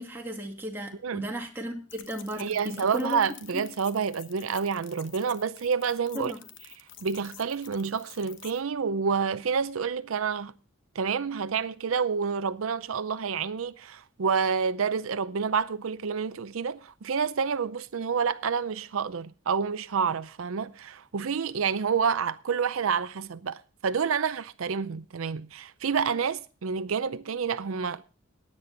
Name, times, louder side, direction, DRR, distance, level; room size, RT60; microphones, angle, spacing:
voice 1, 0.0-3.3 3.5-3.6 6.1-6.4, equal, 10° right, 2.1 m, -35 dB
sound 1, 1.9-8.6, left 10 dB, 60° left, 1.1 m, -49 dB
voice 2, 2.4-6.3 7.0-10.5 10.9-28.0, right 6 dB, 85° right, 0.6 m, -28 dB
16.5 x 9.8 x 3.8 m
head